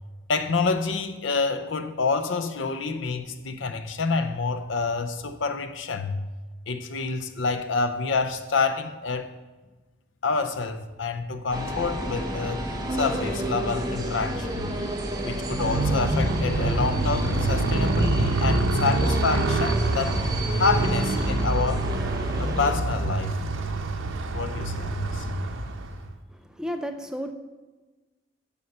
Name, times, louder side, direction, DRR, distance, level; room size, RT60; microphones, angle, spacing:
voice 1, 0.3-6.2 6.7-9.3 10.2-12.6 12.9-14.8 15.2-20.2 20.6-21.9 22.4-23.4 24.3-25.3, left 4 dB, 70° left, 10 dB, 0.6 m, -27 dB
sound 1, 11.5-22.7, right 1 dB, 20° right, 0.9 m, -31 dB
Motorcycle, 15.5-26.1, right 2 dB, 80° right, 0.8 m, -26 dB
voice 2, 26.3-27.3, equal, 5° right, 6 dB, 0.4 m, -33 dB
8.5 x 5.5 x 6.6 m, 1.2 s
head